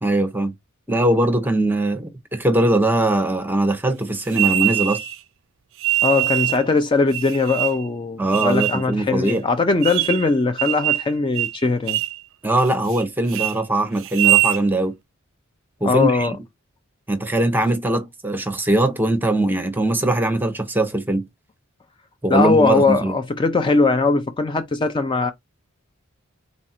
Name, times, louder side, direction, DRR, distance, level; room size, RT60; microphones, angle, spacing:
voice 1, 0.0-0.5 0.9-5.0 8.2-9.4 12.4-14.9 15.8-16.3 17.1-21.2 22.2-23.2, right 1 dB, 10° right, 0.8 m, -21 dB
sound 1, 4.3-5.2 5.8-6.6 7.1-7.9 8.3-8.8 9.3-9.4 9.8-10.3 10.6-11.1 11.3-11.6 11.9-12.2 12.6-13.0 13.3-13.5 14.0-14.6, right 15 dB, 60° right, 0.3 m, -22 dB
voice 2, 6.0-12.0 15.8-16.3 22.3-25.3, left 3 dB, 25° left, 0.4 m, -20 dB
4.0 x 2.5 x 4.2 m
head